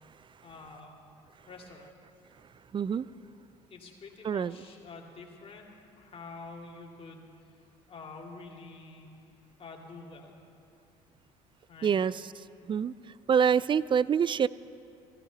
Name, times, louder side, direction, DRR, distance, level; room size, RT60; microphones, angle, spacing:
voice 1, 0.4-1.0 1.5-1.9 3.7-5.7 6.0-7.3 7.9-9.1 9.6-10.3 11.7-12.0, left 3 dB, 35° left, 0 dB, 2.8 m, -47 dB
voice 2, 2.7-3.1 4.2-4.5 11.8-12.1 12.7-12.9 13.3-14.5, right 7 dB, 30° right, 19 dB, 0.4 m, -25 dB
17.5 x 15.0 x 4.2 m, 2.8 s
hypercardioid pair, 65°, 16 cm